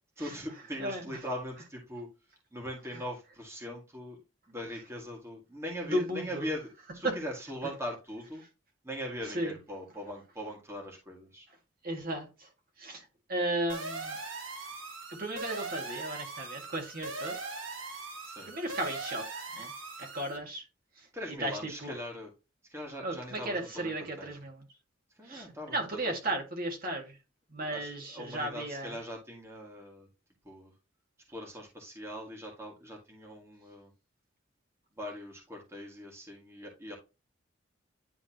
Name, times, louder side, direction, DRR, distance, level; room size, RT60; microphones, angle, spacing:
voice 1, 0.2-2.1 2.5-4.2 4.5-8.4 8.8-11.5 18.2-18.5 21.1-22.3 22.7-24.3 25.2-26.3 27.6-30.1 30.4-30.7 31.3-33.9 35.0-37.0, equal, 15° right, 1.9 m, -41 dB
voice 2, 0.8-1.2 5.9-6.4 7.0-7.1 9.3-9.5 11.8-12.5 12.8-14.2 15.1-17.4 18.5-19.7 20.0-20.6 21.4-22.0 23.0-24.6 25.2-27.2 27.5-28.9, right 1 dB, 50° right, 2.0 m, -35 dB
sound 1, 13.7-20.4, right 3 dB, 85° right, 1.7 m, -40 dB
10.5 x 3.6 x 2.9 m
head